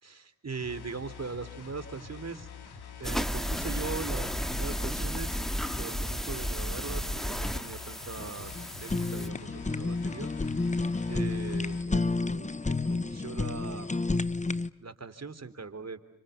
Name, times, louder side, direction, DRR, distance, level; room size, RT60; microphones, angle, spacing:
voice 1, 0.0-2.5 3.0-5.4 5.8-8.5 8.8-10.3 11.1-13.9 14.8-16.0, right 4 dB, 40° right, 10 dB, 3.4 m, -40 dB
sound 1, 0.5-11.8, left 6 dB, 75° left, 3.7 m, -46 dB
sound 2, 3.0-9.3, equal, ahead, 1.9 m, -33 dB
Fire, 8.4-14.7, left 3 dB, 20° left, 1.1 m, -30 dB
30.0 x 26.0 x 7.0 m, 0.78 s
supercardioid pair, 45°, 38 cm